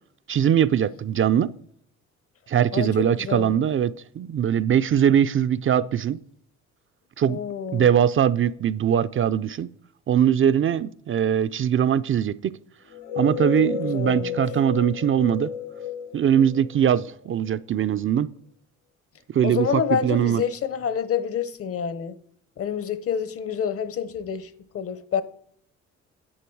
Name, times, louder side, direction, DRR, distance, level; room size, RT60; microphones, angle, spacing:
voice 1, 0.3-1.5 2.5-6.2 7.2-7.4 7.7-9.7 10.1-12.5 13.2-15.5 16.1-18.3 19.3-20.4, right 9 dB, 45° right, 0.5 m, -21 dB
voice 2, 2.7-3.6 7.3-7.9 13.6-14.4 19.4-22.2 22.6-25.2, left 8 dB, 50° left, 0.9 m, -28 dB
sound 1, 12.9-17.5, left 9 dB, 90° left, 1.2 m, -32 dB
10.0 x 8.3 x 4.7 m
cardioid pair, 90°, 30 cm